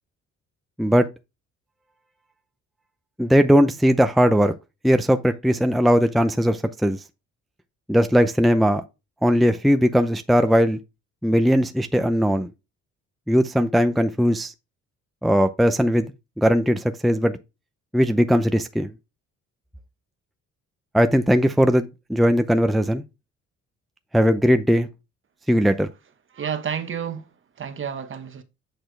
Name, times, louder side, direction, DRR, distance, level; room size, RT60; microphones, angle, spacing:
voice 1, 3.2-4.5 4.8-7.0 7.9-8.8 9.2-10.8 11.2-12.5 13.3-14.5 15.2-16.1 16.4-17.4 17.9-18.9 20.9-23.0 24.1-24.9 25.5-25.9, equal, ahead, 0.5 m, -19 dB
voice 2, 26.3-28.4, right 7 dB, 40° right, 1.1 m, -31 dB
7.9 x 4.4 x 3.3 m
cardioid pair, 90°, 30 cm